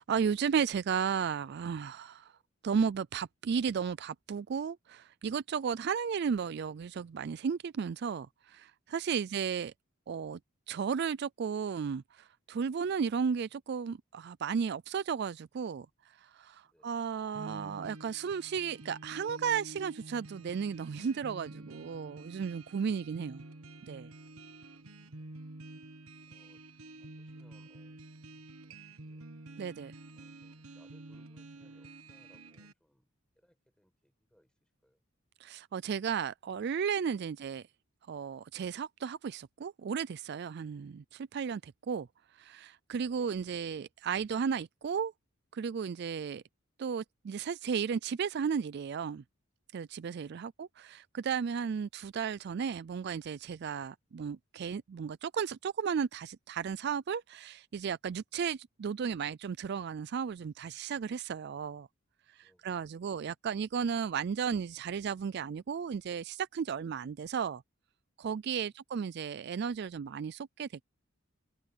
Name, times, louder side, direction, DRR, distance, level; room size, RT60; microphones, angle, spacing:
voice 1, 0.0-2.3 2.6-9.7 10.1-10.4 10.7-15.9 16.2-23.4 23.9-24.1 29.6-29.9 35.4-37.6 38.1-42.1 42.4-45.1 45.5-46.4 46.8-49.2 49.7-61.9 62.3-67.6 68.2-70.7, right 6 dB, 50° right, 0.3 m, -34 dB
voice 2, 2.2-2.5 9.2-9.4 16.6-17.0 22.8-23.1 24.4-25.4 26.3-26.6 27.0-29.4 30.1-35.0 36.0-36.1 37.2-37.4 42.9-43.3 62.4-63.0 68.5-68.7, equal, 5° left, 5.1 m, -70 dB
sound 1, 17.3-32.7, right 2 dB, 90° right, 1.4 m, -49 dB
head